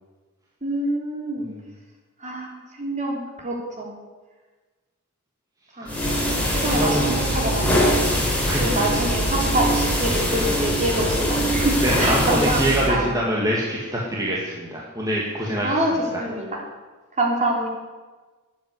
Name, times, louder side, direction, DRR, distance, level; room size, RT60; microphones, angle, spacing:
voice 1, 0.6-1.5 2.2-3.9 5.8-6.0 6.5-8.0 8.6-13.1 15.6-16.6 17.2-17.7, right 1 dB, 35° right, -1 dB, 3.7 m, -26 dB
sound 1, 5.9-12.9, equal, 5° left, 4.4 m, -22 dB
voice 2, 6.7-7.1 8.5-9.1 11.5-15.8 16.1-16.2, right 1 dB, 15° right, -4 dB, 2.2 m, -25 dB
13.0 x 9.4 x 9.6 m, 1.3 s
head